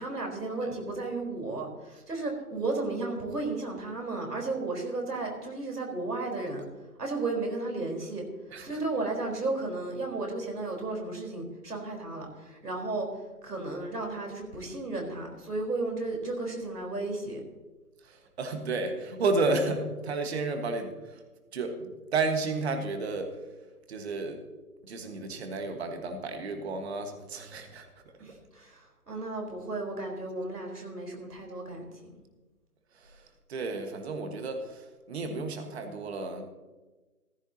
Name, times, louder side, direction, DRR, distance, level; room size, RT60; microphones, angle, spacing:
voice 1, 0.0-6.6 7.0-8.2 8.6-13.1 13.4-17.4 28.2-32.1, right 2 dB, 90° right, 1 dB, 4.2 m, -34 dB
voice 2, 18.0-21.2 21.5-23.4 23.9-24.4 24.8-27.9 28.3-28.4 32.9-36.4, right 3 dB, 45° right, 5 dB, 1.6 m, -32 dB
15.0 x 13.0 x 2.8 m, 1.2 s
figure-of-eight pair, 150°, 46 cm